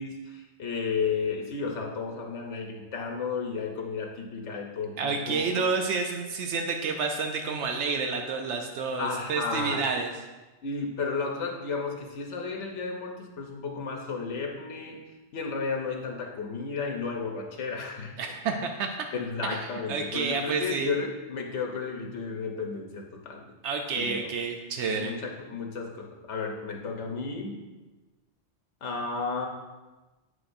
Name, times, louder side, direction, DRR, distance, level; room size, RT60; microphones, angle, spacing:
voice 1, 0.0-5.6 9.0-9.9 10.6-15.0 15.3-18.1 19.1-23.5 24.0-24.3 24.9-27.6 28.8-29.5, left 4 dB, 90° left, 1 dB, 1.1 m, -33 dB
voice 2, 5.0-10.1 18.2-18.9 19.4-20.9 23.6-25.1, right 5 dB, 80° right, 4 dB, 0.9 m, -29 dB
7.7 x 6.3 x 2.6 m, 1.2 s
omnidirectional pair, 1.2 m